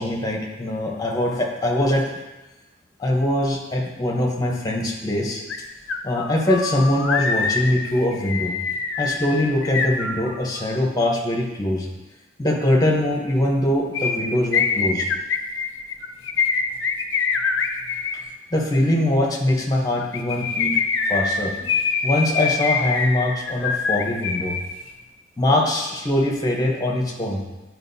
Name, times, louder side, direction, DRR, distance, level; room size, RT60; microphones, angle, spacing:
voice 1, 0.0-2.0 3.0-5.4 6.0-8.5 9.0-11.9 12.4-15.1 18.1-18.2 18.5-20.8 21.1-21.5 22.0-24.5 25.4-27.4, left 1 dB, 15° left, -1 dB, 0.9 m, -22 dB
sound 1, 5.5-5.6 5.9-10.6 13.9-18.2 20.0-24.6 24.9-25.0, left 5 dB, 60° left, 0.5 m, -24 dB
9.6 x 4.6 x 2.7 m, 1.1 s
head